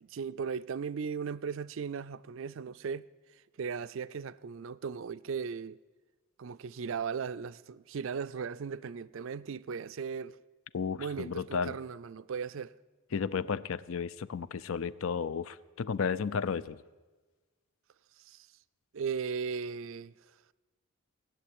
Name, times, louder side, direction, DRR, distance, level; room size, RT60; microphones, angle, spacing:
voice 1, 0.0-3.1 3.3-5.8 6.4-10.4 11.0-12.8 18.2-18.5 18.9-20.1, right 6 dB, 60° right, 0.4 m, -37 dB
voice 2, 10.7-11.7 13.1-16.8, left 6 dB, 65° left, 0.5 m, -33 dB
17.5 x 7.7 x 9.9 m
head